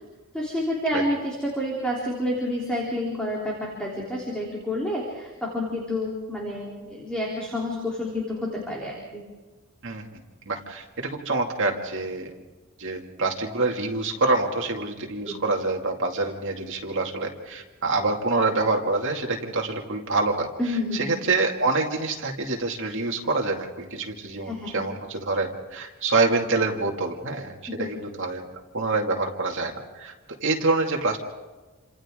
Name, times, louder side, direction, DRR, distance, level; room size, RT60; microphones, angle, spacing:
voice 1, 0.3-9.2 15.3-15.4 20.6-21.2 24.5-24.8 27.8-27.9, left 1 dB, 5° left, -4 dB, 3.5 m, -29 dB
voice 2, 9.8-10.2 10.5-12.3 12.8-20.5 20.9-28.4 28.7-30.1 30.4-31.2, right 3 dB, 55° right, 1 dB, 2.4 m, -26 dB
29.0 x 26.5 x 3.8 m, 1.2 s
head